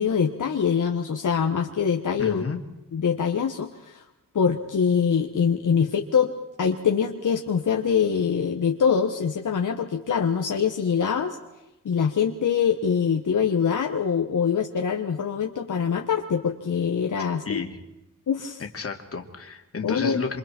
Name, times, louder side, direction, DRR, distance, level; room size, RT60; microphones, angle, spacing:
voice 1, 0.0-2.4 2.9-4.0 4.3-6.3 6.6-11.4 11.8-17.6 18.3-18.6 19.8-20.2, left 7 dB, 65° left, 3 dB, 1.5 m, -24 dB
voice 2, 2.2-2.6 17.5-17.8 18.6-20.4, left 5 dB, 45° left, 4 dB, 2.6 m, -32 dB
27.5 x 26.5 x 4.5 m, 0.95 s
wide cardioid pair, 145°, 33 cm